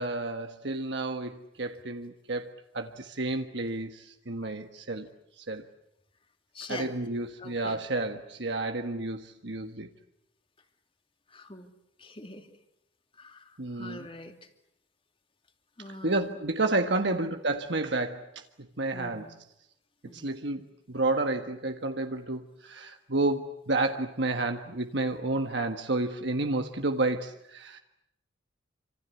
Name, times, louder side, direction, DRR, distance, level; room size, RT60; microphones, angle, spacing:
voice 1, 0.0-5.1 5.4-5.6 6.7-9.9 13.6-14.1 16.0-18.3 18.8-19.3 20.1-27.8, right 2 dB, 65° right, 5 dB, 1.5 m, -30 dB
voice 2, 6.5-7.0 7.4-7.8 11.3-11.7 12.0-12.6 13.1-14.5 15.8-16.3 17.0-17.2 18.9-19.4 20.0-20.3, left 2 dB, 30° left, 6 dB, 2.6 m, -44 dB
27.5 x 26.0 x 8.3 m, 0.81 s
head